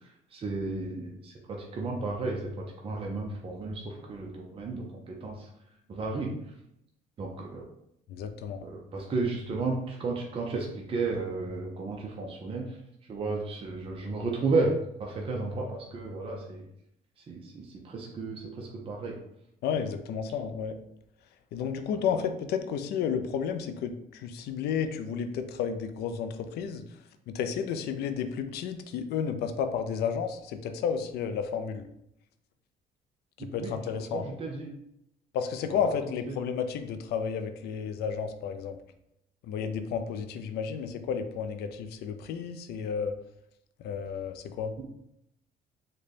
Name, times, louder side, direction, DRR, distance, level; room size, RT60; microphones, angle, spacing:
voice 1, 0.0-5.5 5.9-6.3 7.2-7.6 8.6-12.8 13.1-14.7 15.0-16.7 17.2-19.2 33.4-33.7 34.1-34.7 35.6-35.9 36.3-36.4 44.8-44.9, right 3 dB, 35° right, 0 dB, 0.5 m, -33 dB
voice 2, 8.1-8.6 19.6-20.7 21.5-26.8 27.3-31.8 33.4-34.3 35.3-38.8 39.4-43.2 43.8-44.7, left 7 dB, 75° left, 8 dB, 0.4 m, -32 dB
3.8 x 2.2 x 3.3 m, 0.78 s
cardioid pair, 110°, 17 cm